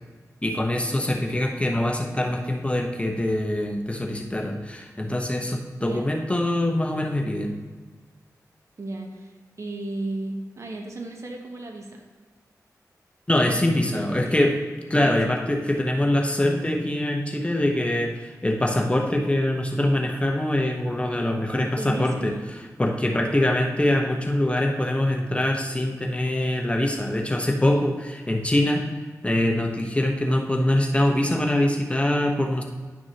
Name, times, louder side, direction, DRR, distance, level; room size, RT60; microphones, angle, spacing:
voice 1, 0.4-7.5 13.3-14.6 14.9-22.3 22.8-28.9 29.2-32.6, left 1 dB, 20° left, 1 dB, 0.9 m, -24 dB
voice 2, 8.8-12.0 14.1-14.5 15.0-15.4 21.5-22.4, right 2 dB, 50° right, 2 dB, 1.1 m, -35 dB
10.5 x 6.1 x 2.9 m, 1.4 s
wide cardioid pair, 65°, 6 cm